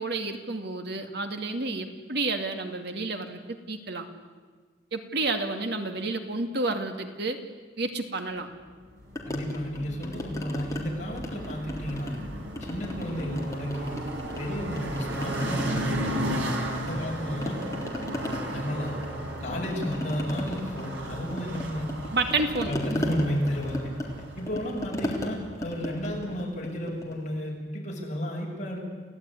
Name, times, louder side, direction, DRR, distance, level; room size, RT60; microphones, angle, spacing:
voice 1, 0.0-3.4 3.7-4.1 4.9-7.4 7.8-8.5 22.1-22.7, right 3 dB, 65° right, 6 dB, 2.3 m, -30 dB
sound 1, 9.0-26.4, right 1 dB, 85° right, 5.1 m, -35 dB
sound 2, 9.2-10.8 11.2-12.2 12.6-14.4 14.7-17.1 17.4-27.2, left 1 dB, 20° left, 3.7 m, -36 dB
voice 2, 9.3-12.2 12.6-14.0 14.4-17.6 18.5-19.0 19.4-21.9 22.7-23.9 24.4-28.8, equal, 40° left, -1 dB, 7.0 m, -32 dB
29.0 x 16.5 x 9.8 m, 1.5 s
head